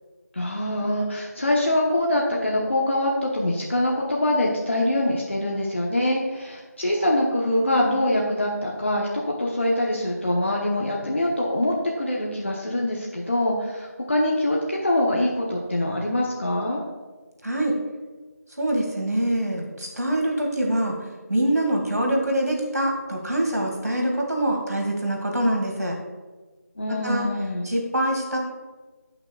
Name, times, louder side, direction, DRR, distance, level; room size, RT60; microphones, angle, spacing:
voice 1, 0.3-16.8 26.8-27.6, left 1 dB, 45° left, -2 dB, 1.1 m, -24 dB
voice 2, 17.4-17.8 18.6-20.9 21.3-26.0 26.9-27.3 27.6-28.4, right 1 dB, 70° right, 0 dB, 2.3 m, -24 dB
16.0 x 6.0 x 2.3 m, 1.3 s
figure-of-eight pair, 170°, 9 cm